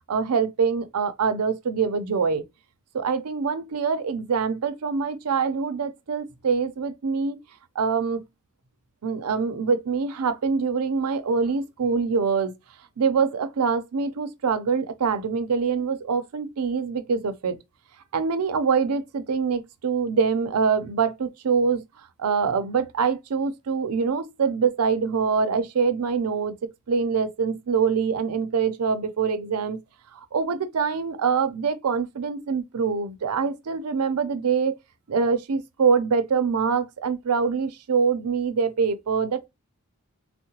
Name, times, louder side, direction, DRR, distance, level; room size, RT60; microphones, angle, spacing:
voice 1, 0.1-2.4 2.9-7.4 7.8-8.2 9.0-12.5 13.0-17.6 18.1-21.8 22.2-26.6 26.9-29.8 30.1-34.8 35.1-39.5, right 5 dB, 85° right, 0.5 m, -24 dB
3.7 x 2.1 x 2.8 m
head